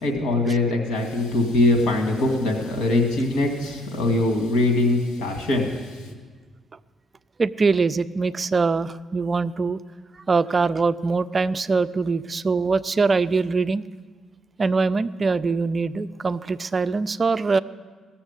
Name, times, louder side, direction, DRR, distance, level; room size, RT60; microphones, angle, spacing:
voice 1, 0.0-6.1, left 2 dB, 90° left, 3 dB, 2.2 m, -22 dB
voice 2, 7.4-9.8 10.3-13.8 14.6-17.6, right 4 dB, 35° right, 15 dB, 0.4 m, -23 dB
17.0 x 7.1 x 8.2 m, 1.5 s
cardioid pair, 90°, 0 cm